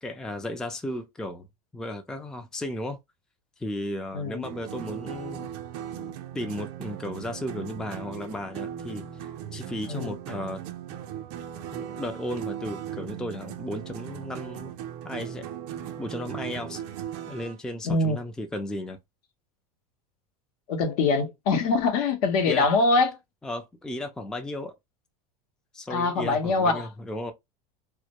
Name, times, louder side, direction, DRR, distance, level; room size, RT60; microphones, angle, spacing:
voice 1, 0.0-1.5 1.7-3.0 3.6-5.5 6.3-9.0 9.5-10.6 11.7-14.8 15.0-15.5 16.0-16.8 17.3-19.0 22.5-22.7 23.4-24.7 25.7-27.3, left 1 dB, 5° left, 0.4 m, -34 dB
voice 2, 4.1-4.4 9.9-10.1 17.8-18.2 20.7-23.1 25.9-26.9, left 3 dB, 70° left, 0.8 m, -23 dB
sound 1, 4.4-17.6, right 10 dB, 60° right, 0.5 m, -38 dB
2.1 x 2.1 x 2.8 m
supercardioid pair, 115°, 19 cm